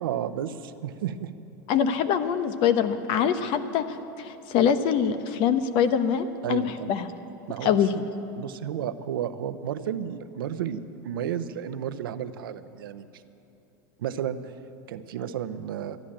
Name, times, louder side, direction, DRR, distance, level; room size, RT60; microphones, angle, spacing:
voice 1, 0.0-1.3 6.4-6.9 7.5-8.1 8.3-13.1 14.0-14.4 14.9-16.0, right 9 dB, 80° right, 11 dB, 0.7 m, -32 dB
voice 2, 1.7-3.9 4.2-7.0 7.6-7.9, left 8 dB, 50° left, 11 dB, 0.9 m, -24 dB
13.0 x 11.0 x 8.8 m, 2.8 s
supercardioid pair, 120°, 11 cm